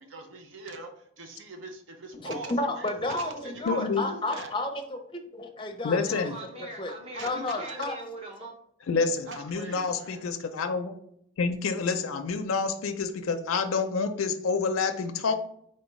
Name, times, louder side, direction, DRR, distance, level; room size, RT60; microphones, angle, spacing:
voice 1, 0.0-4.6 7.1-7.9 9.3-10.3, right 2 dB, 65° right, 5 dB, 0.6 m, -42 dB
voice 2, 2.2-6.2 6.8-6.9 7.2-7.9, left 2 dB, 25° left, 4 dB, 0.5 m, -31 dB
voice 3, 3.7-4.0 5.8-6.4 8.9-10.9 11.4-15.3, left 4 dB, 85° left, 6 dB, 0.4 m, -28 dB
voice 4, 6.0-8.5, right 1 dB, 30° right, 0 dB, 0.9 m, -41 dB
4.4 x 3.5 x 3.1 m, 0.72 s
head